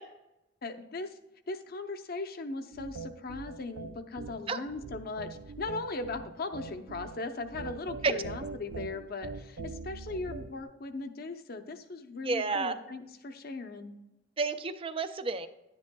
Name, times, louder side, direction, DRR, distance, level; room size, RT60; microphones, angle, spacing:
voice 1, 0.6-1.1 1.5-5.3 5.6-13.9, left 3 dB, 50° left, 8 dB, 0.7 m, -38 dB
sound 1, 2.7-10.6, right 4 dB, 90° right, 0.6 m, -42 dB
voice 2, 12.2-12.8 14.4-15.5, right 3 dB, 30° right, 10 dB, 0.4 m, -30 dB
10.5 x 9.7 x 2.3 m, 0.95 s
head